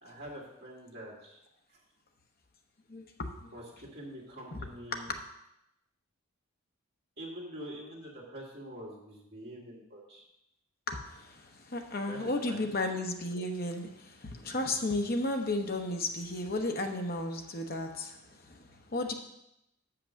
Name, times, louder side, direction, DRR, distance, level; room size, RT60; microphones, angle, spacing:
voice 1, 0.0-1.4 3.5-5.1 7.2-10.3 12.0-12.7, equal, 45° right, -3 dB, 2.3 m, -45 dB
voice 2, 2.9-3.5 4.9-5.2 10.9-18.2 18.5-19.1, left 2 dB, 40° left, 4 dB, 0.9 m, -34 dB
6.8 x 5.9 x 6.3 m, 0.84 s
head